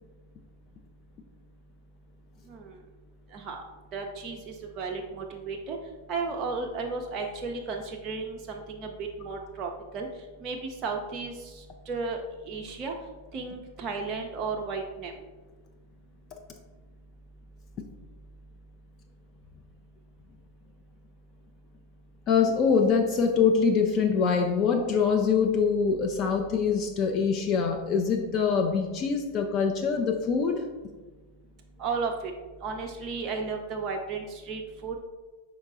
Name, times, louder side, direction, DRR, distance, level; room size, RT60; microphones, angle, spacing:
voice 1, 3.9-5.8 6.1-10.1 10.4-12.2 12.5-12.9 13.3-15.1 31.8-32.3 32.6-35.0, right 4 dB, 30° right, 1 dB, 0.4 m, -34 dB
voice 2, 22.3-30.7, left 6 dB, 35° left, 4 dB, 0.3 m, -24 dB
5.3 x 3.9 x 2.4 m, 1.3 s
figure-of-eight pair, 90°, 0 cm